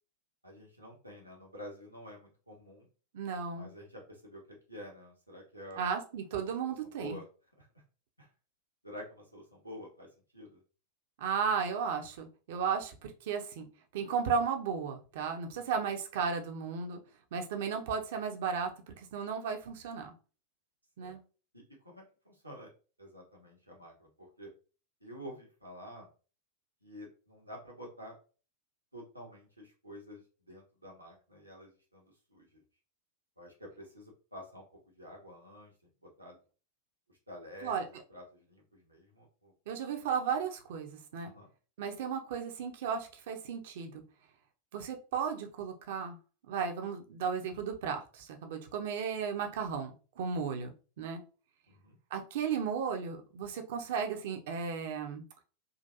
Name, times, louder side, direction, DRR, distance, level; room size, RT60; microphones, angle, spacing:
voice 1, 0.4-2.9 3.5-4.4 4.7-5.8 6.3-7.2 7.6-7.7 8.2-8.3 8.8-10.1 10.3-10.6 15.5-15.6 21.0-21.2 21.5-22.7 23.0-24.5 25.0-26.1 26.8-28.1 28.9-32.6 33.4-34.6 34.9-35.7 36.0-36.3 37.1-39.5 41.2-41.5 51.7-52.0, equal, 85° right, -2 dB, 1.2 m, -49 dB
voice 2, 3.1-3.7 5.8-7.2 11.2-13.7 13.9-17.0 17.3-20.1 21.0-21.2 37.6-37.8 39.7-41.3 41.8-44.0 44.7-46.2 46.5-49.9 50.2-51.2 52.1-55.2, right 6 dB, 55° right, 5 dB, 0.7 m, -35 dB
3.8 x 2.6 x 2.7 m, 0.36 s
figure-of-eight pair, 90°, 0 cm